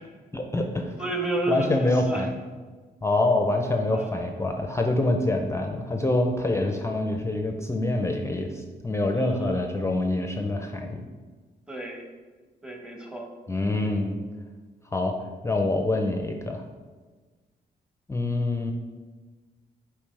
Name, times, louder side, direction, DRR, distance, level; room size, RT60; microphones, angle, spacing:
voice 1, 0.3-0.9 1.5-2.4 3.0-11.0 13.5-14.2 14.9-15.1 15.4-16.6 18.1-18.7, left 2 dB, 15° left, 3 dB, 0.5 m, -25 dB
voice 2, 1.0-2.3 3.9-4.1 9.1-9.4 11.7-12.0 12.6-13.3, right 2 dB, 5° right, 1 dB, 1.0 m, -31 dB
7.0 x 4.6 x 3.3 m, 1.4 s
cardioid pair, 100°, 18 cm